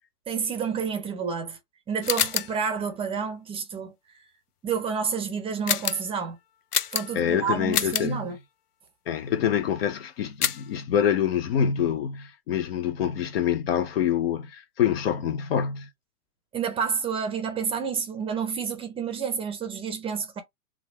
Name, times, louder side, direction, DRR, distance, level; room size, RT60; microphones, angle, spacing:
voice 1, 0.3-1.6 1.9-3.9 4.6-6.4 6.9-8.4 16.5-20.4, right 6 dB, 10° right, 0.7 m, -29 dB
sound 1, 2.0-2.6 5.7-6.1 6.7-7.3 7.7-8.1 10.4-10.7, left 9 dB, 90° left, 0.6 m, -27 dB
voice 2, 7.1-8.3 9.1-15.9, left 9 dB, 40° left, 0.6 m, -26 dB
3.9 x 2.3 x 4.4 m
hypercardioid pair, 120°, 45 cm